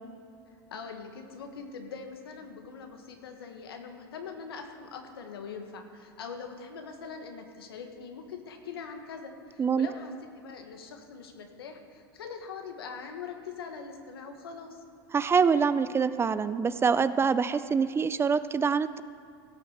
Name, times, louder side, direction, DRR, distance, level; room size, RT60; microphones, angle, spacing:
voice 1, 0.7-14.8, left 5 dB, 85° left, 5 dB, 1.5 m, -42 dB
voice 2, 15.1-19.0, right 5 dB, 20° right, 14 dB, 0.4 m, -25 dB
16.5 x 6.3 x 6.6 m, 2.5 s
hypercardioid pair, 95°, 12 cm